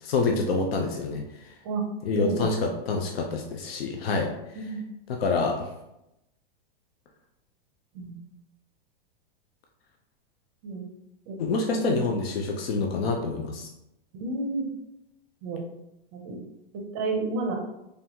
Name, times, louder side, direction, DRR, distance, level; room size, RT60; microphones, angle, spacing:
voice 1, 0.0-1.5 2.0-4.3 4.5-4.7 5.1-5.7 11.4-13.7, left 3 dB, 85° left, 2 dB, 0.7 m, -27 dB
voice 2, 2.1-2.6 4.5-4.8 7.9-8.2 10.6-10.8 11.3-11.4 11.7-11.9 14.2-14.7 15.4-15.6 16.1-16.4 16.7-17.5, right 3 dB, 25° right, 2 dB, 0.5 m, -30 dB
3.9 x 3.4 x 2.9 m, 0.88 s
supercardioid pair, 170°, 29 cm